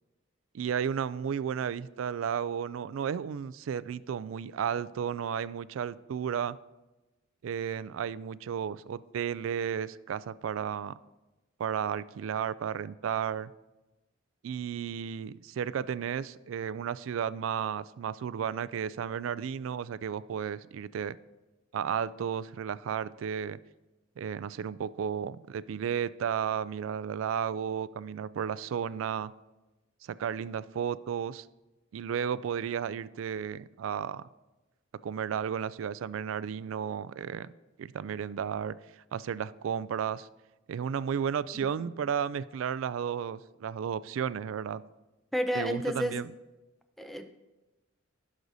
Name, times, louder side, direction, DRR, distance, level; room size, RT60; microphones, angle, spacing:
voice 1, 0.5-6.6 7.4-11.0 11.6-13.5 14.4-21.2 21.7-23.6 24.2-29.3 30.0-31.5 31.9-34.2 35.0-37.5 37.8-38.7 39.1-40.3 40.7-44.8 45.5-46.3, right 8 dB, 80° right, 18 dB, 0.3 m, -33 dB
voice 2, 41.5-41.9 45.3-46.2 47.0-47.4, equal, ahead, 7 dB, 0.5 m, -32 dB
16.5 x 6.2 x 2.7 m, 1.0 s
head